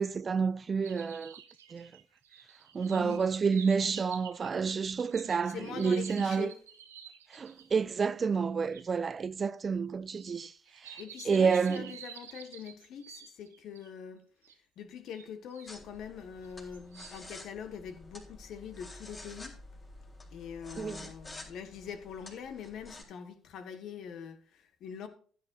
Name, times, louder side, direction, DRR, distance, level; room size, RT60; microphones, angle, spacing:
voice 1, 0.0-1.3 1.7-1.9 2.7-6.5 7.3-10.5 11.3-11.9 20.8-21.1, right 5 dB, 35° right, 0.5 m, -29 dB
sound 1, 0.8-7.8 8.7-8.8 10.2-13.9 14.4-14.6 15.2-15.8 16.4-17.3, right 8 dB, 75° right, 1.0 m, -50 dB
voice 2, 2.9-3.2 5.4-6.6 11.0-14.2 14.8-19.6 20.3-25.1, left 7 dB, 55° left, 1.6 m, -43 dB
sound 2, 15.7-23.0, left 2 dB, 25° left, 3.9 m, -50 dB
15.5 x 9.5 x 2.6 m
figure-of-eight pair, 50°, 0 cm